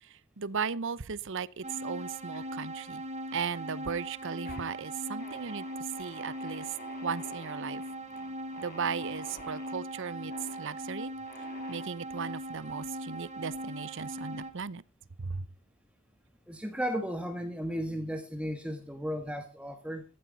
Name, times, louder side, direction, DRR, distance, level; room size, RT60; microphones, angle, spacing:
voice 1, 0.0-3.0 3.3-6.8 7.0-7.8 8.6-11.1 11.7-14.8 15.2-15.5, right 6 dB, 65° right, 0.8 m, -36 dB
sound 1, 1.6-14.5, right 1 dB, 35° right, 3.2 m, -40 dB
sound 2, 2.3-3.1 3.4-3.9 4.3-4.7 5.2-9.8 10.3-10.6 11.2-12.3, left 4 dB, 50° left, 2.7 m, -51 dB
voice 2, 16.5-20.0, equal, 5° right, 1.5 m, -35 dB
15.0 x 12.0 x 4.0 m
head